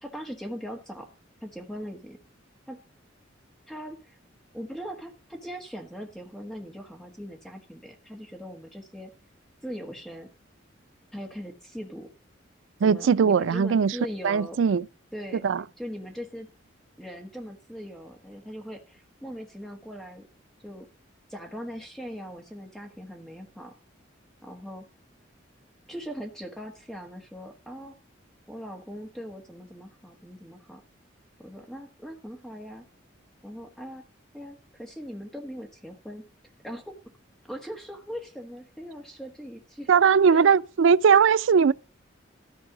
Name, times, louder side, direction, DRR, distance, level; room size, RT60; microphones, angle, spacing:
voice 1, 0.0-1.1 1.4-2.2 2.7-2.8 3.7-4.2 4.5-9.1 9.6-10.3 11.1-12.1 12.8-14.6 15.1-15.4 15.8-16.5 17.0-20.3 20.6-20.9 21.3-23.7 24.4-24.9 25.9-27.9 28.5-30.8 31.4-32.8 33.4-34.0 34.3-36.3 36.6-36.9 37.4-39.9 40.3-40.6, equal, ahead, 1.4 m, -40 dB
voice 2, 12.8-14.0 14.2-14.8 15.4-15.6 39.9-41.7, right 6 dB, 80° right, 0.4 m, -19 dB
13.5 x 4.7 x 5.9 m
head